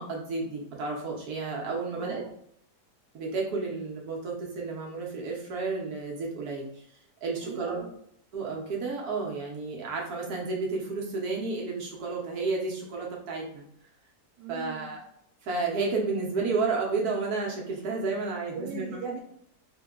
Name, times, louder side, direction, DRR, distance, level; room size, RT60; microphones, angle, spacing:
voice 1, 0.0-2.2 3.1-6.9 7.2-7.8 8.3-13.6 14.5-15.0 15.4-18.9, right 4 dB, 65° right, -1 dB, 1.4 m, -31 dB
voice 2, 1.9-2.3 7.4-7.9 14.4-15.0 18.5-19.2, right 6 dB, 85° right, 1 dB, 1.5 m, -39 dB
3.9 x 2.2 x 3.7 m, 0.69 s
omnidirectional pair, 1.8 m